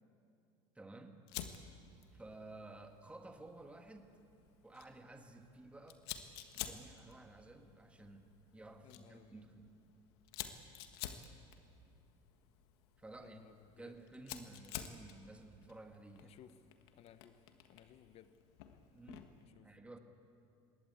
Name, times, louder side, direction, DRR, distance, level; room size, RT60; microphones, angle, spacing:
voice 1, 0.8-1.2 2.1-4.2 4.6-6.0 6.5-9.7 13.0-16.4 18.9-19.3 19.6-20.0, right 2 dB, 10° right, 5 dB, 1.8 m, -54 dB
Fire, 1.3-19.4, left 10 dB, 85° left, 1.6 m, -52 dB
voice 2, 8.8-9.5 13.2-14.0 16.2-16.6 16.9-17.4 17.7-18.3 19.4-20.0, left 10 dB, 50° left, 12 dB, 1.1 m, -61 dB
21.5 x 18.0 x 8.3 m, 2.6 s
supercardioid pair, 110°, 13 cm